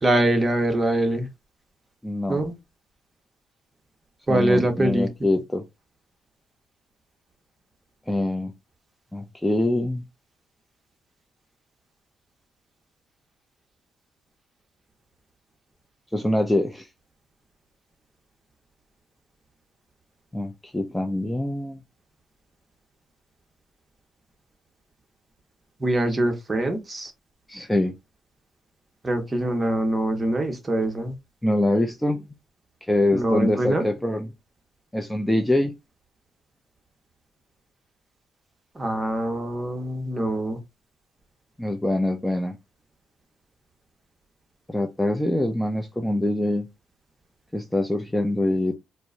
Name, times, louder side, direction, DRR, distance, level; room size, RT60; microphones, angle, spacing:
voice 1, 0.0-1.3 2.3-2.5 4.3-5.1 25.8-27.1 29.0-31.1 33.1-33.8 38.7-40.6, right 1 dB, 25° right, 1.1 m, -23 dB
voice 2, 2.0-2.4 4.3-5.6 8.1-8.5 9.1-10.0 16.1-16.9 20.3-21.8 27.5-28.0 31.4-32.2 32.9-34.3 34.9-35.7 41.6-42.6 44.7-46.7 47.5-48.7, left 1 dB, 5° left, 0.5 m, -24 dB
4.5 x 2.1 x 2.6 m
cardioid pair, 90°, 0 cm